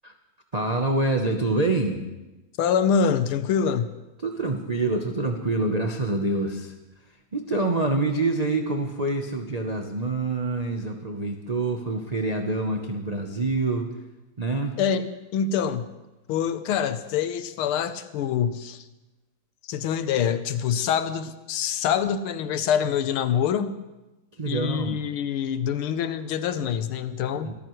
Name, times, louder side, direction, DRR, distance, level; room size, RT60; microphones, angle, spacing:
voice 1, 0.5-2.0 4.2-6.7 7.3-13.9 14.4-14.8 24.3-25.0 27.4-27.5, right 2 dB, 60° right, 3 dB, 0.4 m, -26 dB
voice 2, 2.6-3.9 14.8-15.9 16.3-18.9 19.7-23.7 24.5-27.5, left 7 dB, 90° left, 12 dB, 1.7 m, -25 dB
25.0 x 13.5 x 3.2 m, 1.0 s
omnidirectional pair, 2.3 m